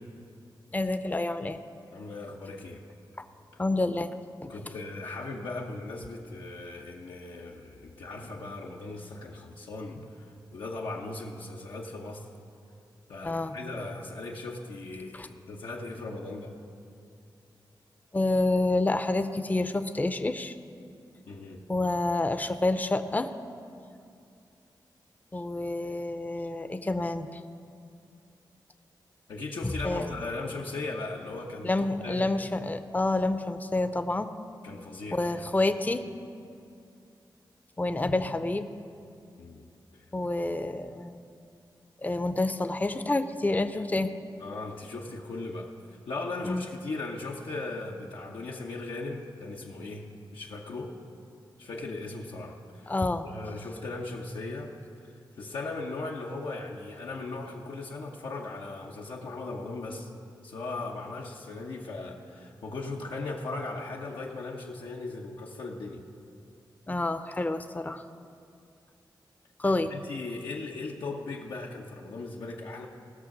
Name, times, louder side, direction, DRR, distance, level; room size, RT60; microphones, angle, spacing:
voice 1, 0.7-1.6 3.2-3.3 3.6-4.1 4.4-4.5 13.2-13.6 15.1-15.3 18.1-20.5 21.7-23.3 25.3-27.4 29.6-30.1 31.6-34.3 35.1-36.1 37.8-38.7 40.1-41.2 42.0-44.1 46.4-46.6 52.9-53.3 66.9-68.0 69.6-69.9, left 2 dB, 20° left, 10 dB, 0.6 m, -28 dB
voice 2, 1.9-2.8 4.5-10.3 10.5-12.3 13.1-16.5 21.3-21.6 29.3-32.3 34.6-35.4 39.4-39.6 44.4-45.7 46.1-50.9 51.6-52.9 53.2-54.7 55.4-60.1 60.4-66.0 69.6-72.9, left 3 dB, 90° left, -2 dB, 0.9 m, -38 dB
17.0 x 6.5 x 6.0 m, 2.4 s
cardioid pair, 65°, 8 cm